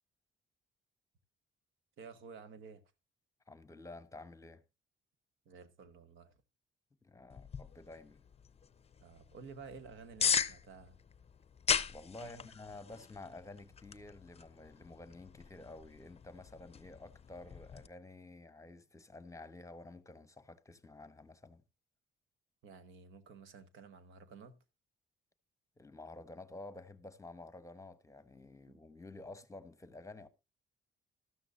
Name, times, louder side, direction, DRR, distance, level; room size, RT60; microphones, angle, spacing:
voice 1, 2.0-2.8 5.4-6.3 9.0-11.0 12.2-12.5 22.6-24.6 28.7-28.8, right 5 dB, 80° right, 1.2 m, -52 dB
voice 2, 3.5-4.6 7.0-8.2 11.9-21.6 25.8-30.3, left 2 dB, 15° left, 1.0 m, -51 dB
sound 1, 7.3-17.9, left 6 dB, 30° left, 0.6 m, -39 dB
13.0 x 12.0 x 2.5 m
cardioid pair, 90°, 20 cm